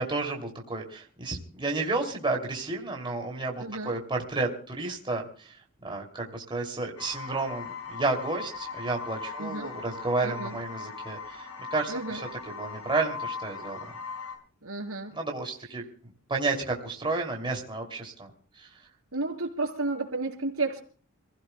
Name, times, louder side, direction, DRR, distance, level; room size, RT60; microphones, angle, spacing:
voice 1, 0.0-5.5 5.8-13.8 15.1-15.8 16.3-18.3 18.6-18.7, right 3 dB, 25° right, 0 dB, 2.7 m, -31 dB
voice 2, 3.6-4.0 9.4-9.7 10.2-10.6 11.9-12.2 14.6-15.1 19.1-20.8, right 3 dB, 70° right, 3 dB, 4.0 m, -32 dB
sound 1, 7.0-14.3, left 5 dB, 90° left, 5.7 m, -39 dB
28.5 x 16.0 x 2.2 m, 0.43 s
head